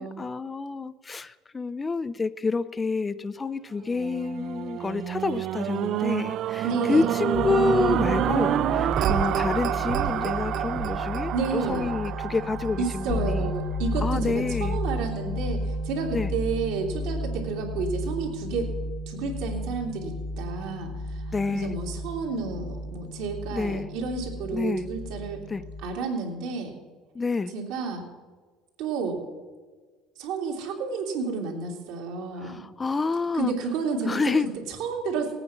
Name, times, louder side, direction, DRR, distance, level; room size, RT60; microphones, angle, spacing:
voice 1, 0.0-13.5 14.0-14.8 16.1-16.3 21.3-21.7 23.5-23.9 24.5-24.9 25.5-25.6 27.2-27.5 32.4-33.5 34.1-34.5, left 4 dB, 20° left, 15 dB, 0.4 m, -28 dB
sound 1, 3.9-14.2 14.8-14.9, right 11 dB, 50° right, 0.4 m, -28 dB
voice 2, 6.6-7.1 11.3-11.9 12.8-18.7 19.1-25.4 25.8-26.7 27.5-28.1 28.8-29.2 30.2-32.6 33.3-34.2 34.7-35.3, right 5 dB, 75° right, 0 dB, 2.9 m, -31 dB
sound 2, 7.3-25.8, left 1 dB, 80° left, 4.3 m, -33 dB
18.0 x 8.9 x 5.9 m, 1.4 s
cardioid pair, 135°, 0 cm